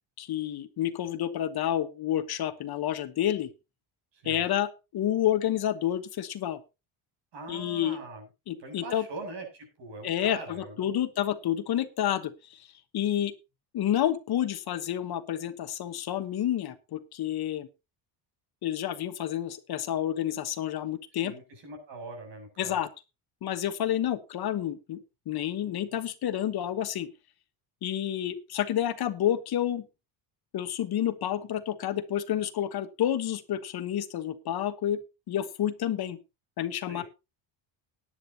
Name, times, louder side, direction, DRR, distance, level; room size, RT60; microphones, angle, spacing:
voice 1, 0.2-3.5 4.2-6.6 7.5-8.0 8.5-9.0 10.0-12.6 12.9-13.3 13.7-17.7 18.6-21.3 22.6-22.9 23.4-25.0 25.3-27.1 27.8-29.8 30.5-35.0 35.3-36.2 36.6-37.0, left 11 dB, 50° left, 11 dB, 1.2 m, -29 dB
voice 2, 4.1-4.4 7.3-8.3 8.6-11.0 21.2-22.8 36.9-37.0, right 2 dB, 60° right, 4 dB, 7.7 m, -42 dB
17.5 x 10.0 x 2.8 m, 0.27 s
cardioid pair, 125°, 48 cm